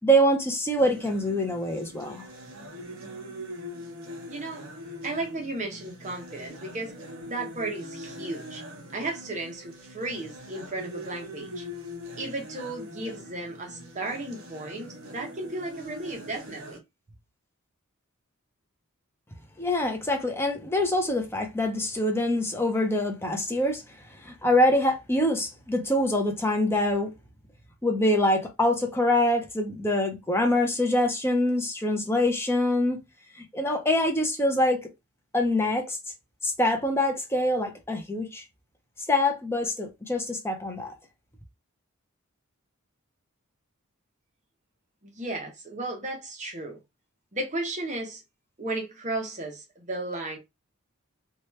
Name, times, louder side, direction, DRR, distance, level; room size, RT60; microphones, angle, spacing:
voice 1, 0.0-2.2 19.6-23.8 24.2-27.1 27.8-33.0 33.4-34.9 35.3-36.0 36.4-38.4 39.1-40.9, left 1 dB, 10° left, 0.6 m, -25 dB
sound 1, 0.8-16.8, equal, 65° right, 0.9 m, -42 dB
voice 2, 4.3-4.6 5.0-7.0 7.3-8.6 8.9-11.6 12.2-16.8 45.0-46.8 47.3-48.2 48.6-50.4, right 2 dB, 35° right, 0.8 m, -34 dB
2.9 x 2.2 x 3.1 m
head